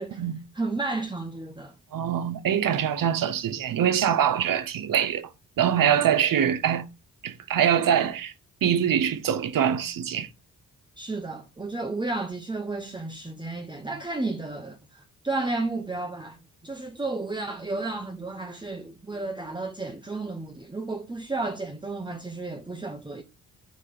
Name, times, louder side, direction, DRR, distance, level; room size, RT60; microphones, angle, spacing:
voice 1, 0.5-1.7 11.0-16.4 16.6-23.2, right 3 dB, 15° right, 1.0 m, -32 dB
voice 2, 1.9-5.3 5.6-6.8 7.2-8.3 8.6-10.3, right 9 dB, 80° right, 1.1 m, -24 dB
9.2 x 3.4 x 6.8 m
cardioid pair, 95°, 33 cm